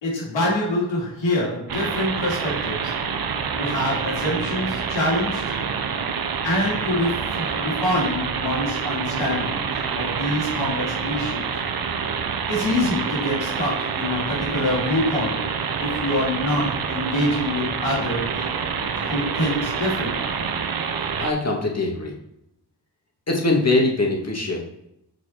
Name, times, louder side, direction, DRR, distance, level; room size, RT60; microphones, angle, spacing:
voice 1, 0.0-2.9 3.6-5.6 6.4-9.7 10.0-11.4 12.5-15.5 15.8-18.4 19.0-20.2, left 1 dB, 90° left, -5 dB, 2.7 m, -25 dB
sound 1, 1.7-21.3, right 6 dB, 55° right, 0.8 m, -27 dB
voice 2, 21.2-22.1 23.3-24.6, left 2 dB, 35° left, 0 dB, 2.0 m, -22 dB
6.2 x 4.2 x 4.5 m, 0.80 s
cardioid pair, 50°, 44 cm